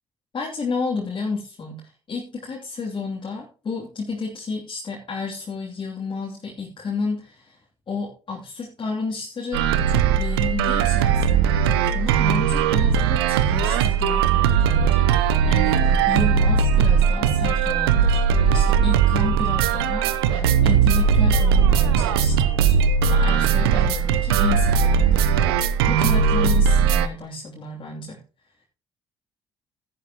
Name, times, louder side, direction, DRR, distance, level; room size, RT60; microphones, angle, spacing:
voice 1, 0.3-7.6 7.9-15.8 16.1-25.6 25.9-28.2, left 4 dB, 40° left, -3 dB, 3.1 m, -31 dB
sound 1, 9.5-27.1, right 7 dB, 80° right, 0.8 m, -19 dB
sound 2, 12.7-25.0, equal, 20° left, 4.2 m, -43 dB
14.0 x 11.0 x 3.0 m, 0.37 s
figure-of-eight pair, 45°, 13 cm